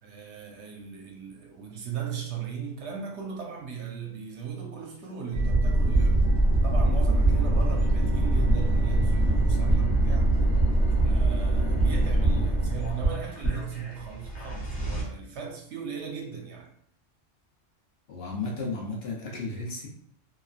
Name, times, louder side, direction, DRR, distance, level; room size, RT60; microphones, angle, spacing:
voice 1, 0.0-6.2 6.6-10.3 11.0-16.7, right 7 dB, 70° right, 0.8 m, -37 dB
sound 1, 5.3-15.0, right 1 dB, 25° left, 0.6 m, -23 dB
voice 2, 18.1-19.9, left 3 dB, 60° left, 0.8 m, -33 dB
3.0 x 2.3 x 2.4 m
omnidirectional pair, 1.3 m